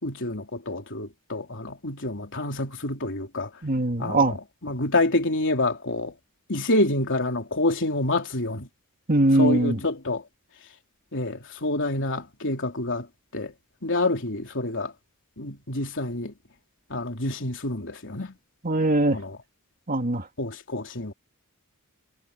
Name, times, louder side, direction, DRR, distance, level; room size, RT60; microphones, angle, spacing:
voice 1, 0.0-3.6 4.0-6.1 6.5-8.7 9.3-10.2 11.1-13.1 13.3-13.5 13.8-14.9 15.4-16.3 16.9-18.4 19.1-19.4 20.4-21.1, left 2 dB, 55° left, 3.6 m, -27 dB
voice 2, 3.6-4.4 9.1-9.8 18.6-19.2 19.9-20.3, right 1 dB, 40° right, 2.5 m, -21 dB
head